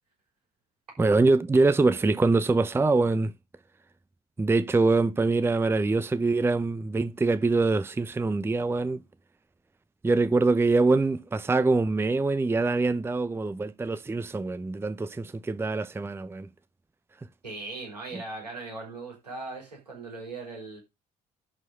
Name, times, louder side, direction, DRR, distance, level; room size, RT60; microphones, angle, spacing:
voice 1, 1.0-3.3 4.4-9.0 10.0-16.5 18.1-18.2, right 3 dB, 10° right, 0.6 m, -24 dB
voice 2, 17.4-20.8, right 3 dB, 80° right, 4.6 m, -39 dB
11.0 x 4.7 x 5.2 m
figure-of-eight pair, 50°, 20 cm